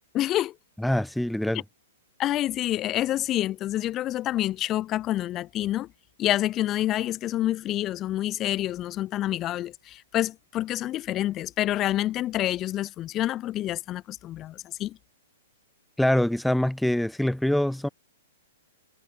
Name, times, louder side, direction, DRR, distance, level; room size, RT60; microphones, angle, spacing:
voice 1, 0.1-0.5 1.5-1.6 2.2-5.9 6.2-15.0, left 13 dB, 30° left, 2.5 m, -28 dB
voice 2, 0.8-1.6 16.0-17.9, left 1 dB, ahead, 0.5 m, -24 dB
figure-of-eight pair, 115°, 0 cm